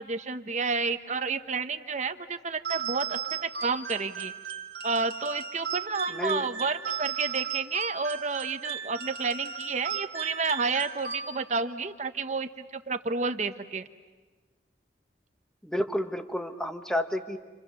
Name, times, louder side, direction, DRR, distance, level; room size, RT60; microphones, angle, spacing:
voice 1, 0.0-4.3 4.8-13.9, right 4 dB, 40° right, 9 dB, 1.0 m, -30 dB
sound 1, 2.6-11.7, right 7 dB, 55° right, 1.9 m, -36 dB
voice 2, 6.1-6.5 15.6-17.4, left 1 dB, 5° left, 6 dB, 1.2 m, -30 dB
30.0 x 27.0 x 6.9 m, 1.3 s
head